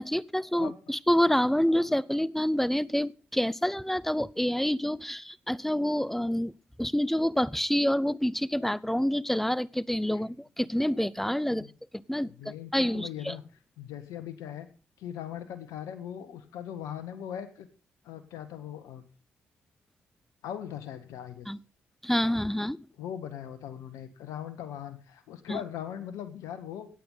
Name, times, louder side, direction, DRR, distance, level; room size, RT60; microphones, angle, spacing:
voice 1, 0.0-6.5 6.8-11.7 12.1-13.4 21.5-21.6 22.0-22.8 25.5-25.6, equal, 5° left, 21 dB, 0.7 m, -27 dB
voice 2, 12.2-13.4 13.8-14.7 15.0-17.7 18.0-19.0 20.4-21.5 23.0-26.9, left 10 dB, 75° left, 11 dB, 1.6 m, -40 dB
16.0 x 9.2 x 4.0 m, 0.36 s
hypercardioid pair, 45°, 6 cm